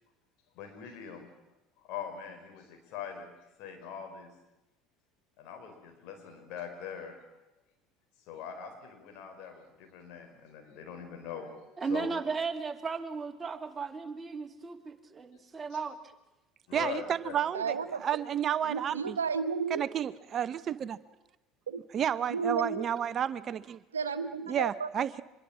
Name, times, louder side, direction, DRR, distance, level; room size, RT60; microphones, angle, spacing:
voice 1, 0.5-1.3 1.8-3.3 3.6-4.3 5.4-7.2 8.3-12.1 15.7-15.8 16.7-17.4, left 7 dB, 60° left, 5 dB, 5.2 m, -42 dB
voice 2, 11.8-16.0, right 4 dB, 25° right, 6 dB, 2.4 m, -35 dB
voice 3, 16.7-19.2 19.7-21.0 21.9-23.8 24.5-25.2, right 9 dB, 45° right, 16 dB, 0.8 m, -31 dB
voice 4, 17.5-18.0 18.6-19.8 21.7-21.8 22.3-22.9 23.9-24.9, right 5 dB, 90° right, 10 dB, 1.1 m, -32 dB
24.5 x 22.0 x 7.4 m, 0.98 s
hypercardioid pair, 70°, 0 cm